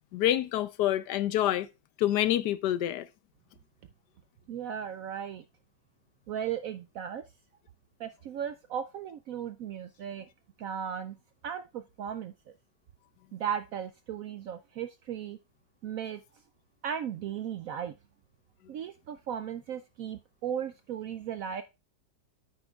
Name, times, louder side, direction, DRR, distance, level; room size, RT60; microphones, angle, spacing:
voice 1, 0.1-1.7 2.0-3.1, left 12 dB, 75° left, 1.1 m, -27 dB
voice 2, 4.5-5.4 6.3-7.2 8.0-10.3 10.6-11.1 11.4-12.3 13.3-15.4 15.8-16.2 16.8-17.9 18.7-21.6, right 9 dB, 75° right, 0.8 m, -36 dB
9.7 x 8.8 x 2.3 m
omnidirectional pair, 1.9 m